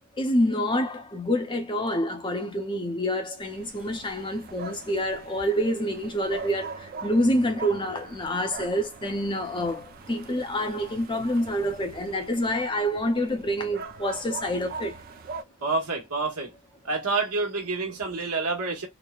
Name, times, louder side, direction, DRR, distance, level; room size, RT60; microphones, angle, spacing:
voice 1, 0.2-15.0, equal, 20° left, 0.5 m, -27 dB
sound 1, 3.4-15.4, right 5 dB, 40° right, 0.3 m, -42 dB
voice 2, 15.6-16.5 16.8-18.9, right 3 dB, 85° right, 1.2 m, -28 dB
2.9 x 2.1 x 2.3 m
head